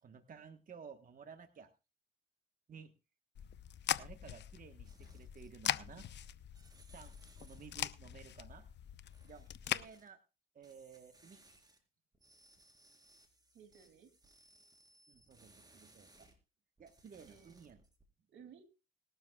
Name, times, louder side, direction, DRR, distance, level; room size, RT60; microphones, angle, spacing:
voice 1, 0.0-1.7 2.7-2.9 4.0-6.1 6.9-8.7 9.2-10.2 10.5-11.4 15.1-16.3 16.8-17.8, right 6 dB, 45° right, 7 dB, 1.3 m, -55 dB
sound 1, 3.3-9.8, left 10 dB, 60° left, 0.8 m, -41 dB
sound 2, 4.8-5.7 6.0-7.8 9.1-10.1 10.6-11.8 12.1-16.3 16.8-18.0, right 2 dB, 20° right, 4.4 m, -65 dB
voice 2, 13.5-14.1 17.3-17.6 18.3-18.8, right 7 dB, 75° right, 7 dB, 3.0 m, -59 dB
20.0 x 12.5 x 2.4 m, 0.29 s
cardioid pair, 90°, 20 cm